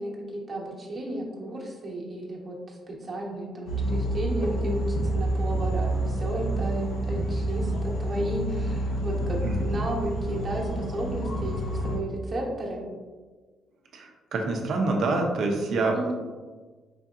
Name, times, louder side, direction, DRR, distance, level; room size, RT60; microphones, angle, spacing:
voice 1, 0.0-2.5 2.9-4.8 5.1-12.8 15.9-16.1, right 1 dB, 40° right, -3 dB, 1.0 m, -33 dB
sound 1, 3.7-12.0, right 1 dB, 85° left, 0.7 m, -28 dB
voice 2, 13.9-16.0, right 3 dB, 65° right, 2 dB, 0.7 m, -26 dB
4.9 x 2.7 x 2.4 m, 1.4 s
cardioid pair, 90°, 0 cm